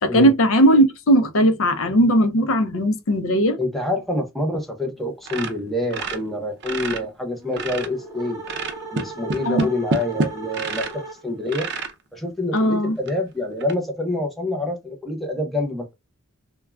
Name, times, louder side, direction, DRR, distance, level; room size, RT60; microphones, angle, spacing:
voice 1, 0.0-3.6 9.4-9.7 12.5-13.0, equal, 70° left, 0.5 m, -18 dB
voice 2, 3.6-8.4 8.9-11.7 12.1-15.9, left 1 dB, ahead, 0.6 m, -26 dB
sound 1, 5.2-7.1 7.4-8.0 8.4-11.0 11.5-11.9 12.6-12.7 13.1-13.2 13.6-13.7, right 3 dB, 50° right, 0.5 m, -28 dB
sound 2, 7.3-11.5, right 2 dB, 15° right, 1.0 m, -37 dB
3.4 x 2.2 x 2.2 m
head